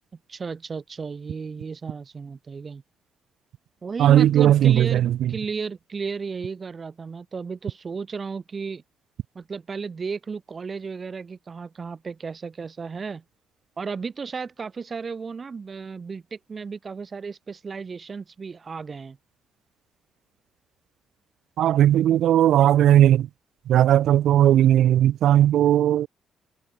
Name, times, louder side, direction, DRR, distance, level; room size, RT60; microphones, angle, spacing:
voice 1, 0.3-2.8 3.8-8.8 9.3-13.2 13.8-19.2, right 5 dB, 35° right, 6.6 m, -34 dB
voice 2, 4.0-5.3 21.6-23.3 23.7-26.1, right 11 dB, 75° right, 0.9 m, -17 dB
cardioid pair, 90°, 0 cm